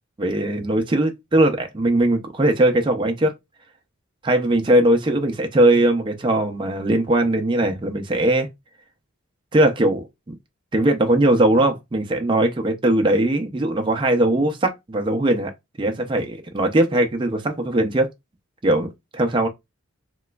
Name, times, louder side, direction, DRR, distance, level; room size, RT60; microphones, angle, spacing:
voice 1, 0.2-3.3 4.2-8.5 9.5-10.0 10.7-15.5 15.8-18.1 18.6-19.5, right 1 dB, 25° right, 0.4 m, -20 dB
3.2 x 2.9 x 2.2 m
head